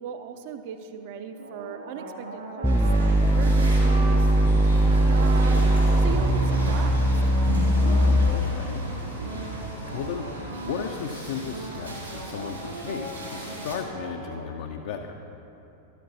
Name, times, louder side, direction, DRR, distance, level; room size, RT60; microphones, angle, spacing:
voice 1, 0.0-2.7 3.0-7.1, right 7 dB, 50° right, 8 dB, 0.6 m, -38 dB
sound 1, 1.3-4.5 4.8-11.2 11.4-14.4, right 2 dB, 65° right, 2.3 m, -39 dB
sound 2, 2.6-8.6, right 1 dB, ahead, 0.4 m, -20 dB
sound 3, 2.6-13.8, right 1 dB, 85° right, 2.4 m, -35 dB
voice 2, 7.8-8.8 9.9-15.2, left 6 dB, 55° left, 3 dB, 0.5 m, -35 dB
12.5 x 12.5 x 2.7 m, 2.9 s
figure-of-eight pair, 90°, 0 cm